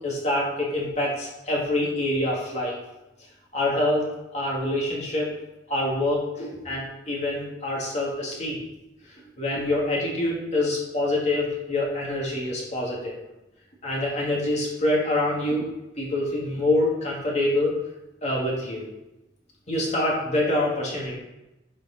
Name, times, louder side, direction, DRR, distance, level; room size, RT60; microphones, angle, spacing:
voice 1, 0.0-2.8 3.5-5.3 5.7-8.6 9.4-13.2 13.8-15.7 16.0-17.7 18.2-18.9 19.7-21.2, left 1 dB, 40° left, -4 dB, 2.6 m, -26 dB
11.5 x 5.2 x 4.3 m, 0.98 s
head